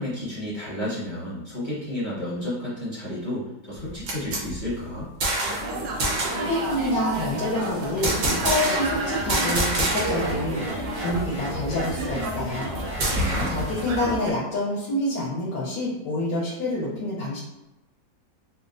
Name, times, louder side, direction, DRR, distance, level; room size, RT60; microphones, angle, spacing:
voice 1, 0.0-5.1 13.0-13.5, left 1 dB, 15° left, -10 dB, 1.3 m, -31 dB
sound 1, 3.8-5.7 6.0-6.5 8.0-9.0 9.3-10.4 10.6-10.7 11.1-13.7, right 1 dB, 55° right, 0.9 m, -27 dB
sound 2, 5.4-14.3, right 2 dB, 75° right, 1.3 m, -31 dB
voice 2, 6.4-8.1 8.4-12.7 13.5-17.4, left 1 dB, 85° left, -6 dB, 1.4 m, -27 dB
sound 3, 8.0-14.2, equal, 40° left, 0.5 m, -37 dB
4.1 x 2.3 x 2.5 m, 0.97 s
omnidirectional pair, 1.9 m